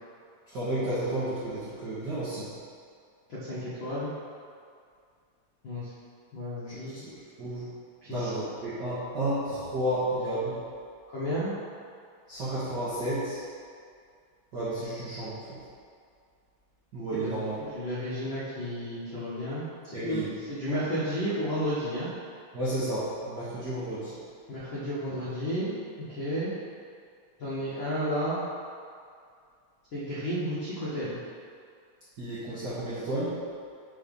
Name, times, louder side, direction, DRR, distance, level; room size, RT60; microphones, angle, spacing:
voice 1, 0.5-2.5 6.7-6.8 7.4-7.6 8.1-10.6 12.3-13.4 14.5-15.4 16.9-17.6 19.9-20.3 22.5-24.1 32.2-33.4, right 1 dB, 85° right, -11 dB, 0.9 m, -31 dB
voice 2, 3.3-4.1 5.6-5.9 6.3-7.1 8.1-8.3 11.1-11.5 17.1-22.1 24.5-25.7 26.0-26.5 27.4-28.4 29.9-31.2, equal, 75° left, -11 dB, 1.1 m, -32 dB
5.6 x 4.0 x 5.2 m, 2.2 s
omnidirectional pair, 3.8 m